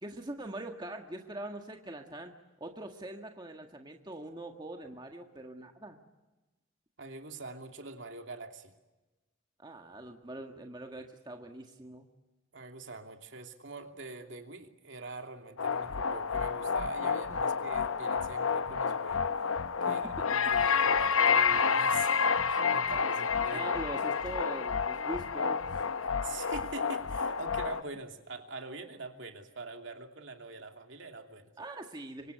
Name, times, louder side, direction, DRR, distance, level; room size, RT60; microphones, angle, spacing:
voice 1, 0.0-2.3 2.6-6.0 9.6-12.1 19.9-20.0 23.5-25.6 31.6-32.3, right 1 dB, 20° right, 3 dB, 1.7 m, -42 dB
voice 2, 7.0-8.7 12.5-19.2 19.8-23.6 26.0-31.5, right 3 dB, 60° right, 4 dB, 2.7 m, -44 dB
sound 1, 15.6-27.8, left 6 dB, 80° left, 0.8 m, -29 dB
25.5 x 25.0 x 8.2 m, 1.1 s
head